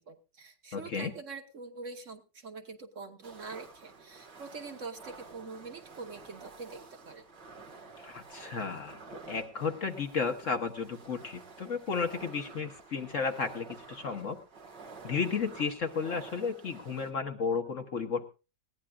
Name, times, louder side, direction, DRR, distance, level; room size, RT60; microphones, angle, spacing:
voice 1, 0.1-7.2, right 4 dB, 50° right, 5 dB, 1.4 m, -44 dB
voice 2, 0.7-1.1 8.0-14.4 15.0-18.3, left 5 dB, 50° left, 6 dB, 1.3 m, -33 dB
sound 1, 3.2-17.1, right 4 dB, 80° right, 2.4 m, -50 dB
20.0 x 16.0 x 2.4 m, 0.31 s
omnidirectional pair, 1.8 m